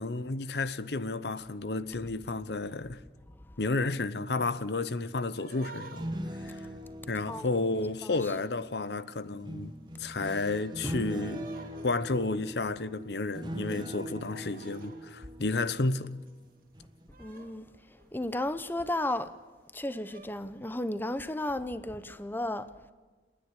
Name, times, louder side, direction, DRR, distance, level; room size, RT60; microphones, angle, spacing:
voice 1, 0.0-3.0 3.6-6.1 6.4-6.6 7.1-9.7 10.0-11.5 11.8-16.1, left 3 dB, 65° left, 0.8 m, -31 dB
voice 2, 3.3-3.6 7.3-7.6 8.0-8.3 10.8-11.1 17.2-19.3 19.7-22.7, left 1 dB, 10° left, 0.7 m, -34 dB
sound 1, 4.5-9.3 9.8-16.5 16.8-18.5 19.0-19.1 19.5-19.6 19.9-21.1, right 2 dB, 50° right, 2.3 m, -53 dB
sound 2, 5.8-8.7 9.4-16.4 16.7-17.1, right 1 dB, 25° right, 1.3 m, -41 dB
29.0 x 10.0 x 9.8 m
head